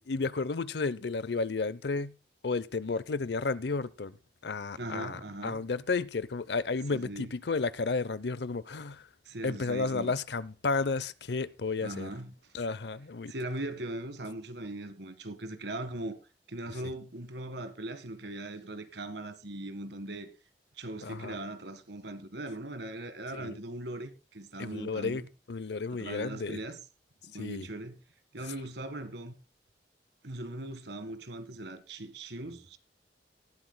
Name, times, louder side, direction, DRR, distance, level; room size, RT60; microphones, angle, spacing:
voice 1, 0.1-2.1 2.4-4.2 4.4-9.0 9.4-12.1 12.5-13.3 21.0-21.3 23.4-23.6 24.6-25.2 25.5-26.6 27.4-27.7, left 4 dB, 70° left, 0.7 m, -32 dB
voice 2, 4.8-5.6 6.9-7.3 9.3-10.1 11.8-12.3 13.3-16.2 16.5-20.3 20.8-25.3 25.9-26.8 27.3-28.0 28.3-29.3 30.2-32.8, right 1 dB, 75° right, 1.8 m, -39 dB
19.0 x 12.0 x 2.2 m
head